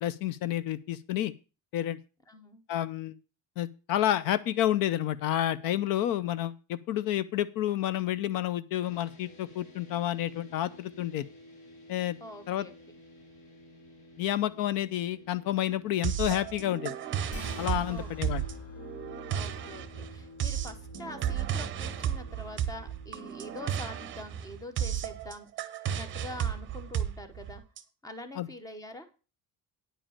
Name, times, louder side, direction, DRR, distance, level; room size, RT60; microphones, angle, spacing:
voice 1, 0.0-1.3 1.7-2.0 2.7-3.2 3.6-11.2 11.9-12.2 12.5-12.7 14.2-16.9 17.6-18.4 28.4-28.5, left 12 dB, 65° left, 17 dB, 0.6 m, -30 dB
voice 2, 2.3-2.6 12.2-12.7 17.9-18.4 19.3-25.5 25.9-27.6 28.0-29.1, left 1 dB, 10° left, 9 dB, 1.0 m, -45 dB
sound 1, 8.8-25.2, left 1 dB, 80° left, 5.7 m, -55 dB
sound 2, 16.0-27.8, right 9 dB, 35° right, 0.8 m, -33 dB
sound 3, 17.3-23.8, left 3 dB, 45° left, 4.6 m, -47 dB
9.9 x 5.2 x 7.2 m, 0.33 s
cardioid pair, 180°, 36 cm